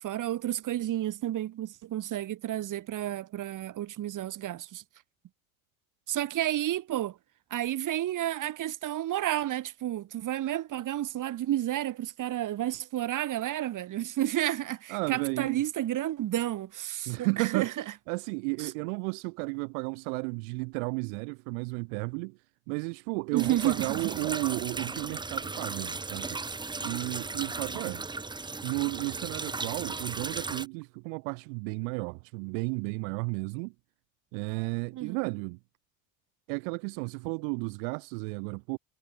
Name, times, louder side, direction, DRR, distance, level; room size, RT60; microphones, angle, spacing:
voice 1, 0.0-4.8 6.1-7.2 7.5-17.7 18.6-18.7 23.3-24.1 34.9-35.1, right 13 dB, 45° right, 2.6 m, -31 dB
voice 2, 14.9-15.6 17.1-22.4 22.7-26.4 26.8-28.0 28.6-33.7 34.3-35.6 36.5-38.8, right 40 dB or more, 70° right, 0.9 m, -33 dB
sound 1, 23.4-30.7, right 3 dB, 10° right, 0.9 m, -36 dB
hypercardioid pair, 80°, 42 cm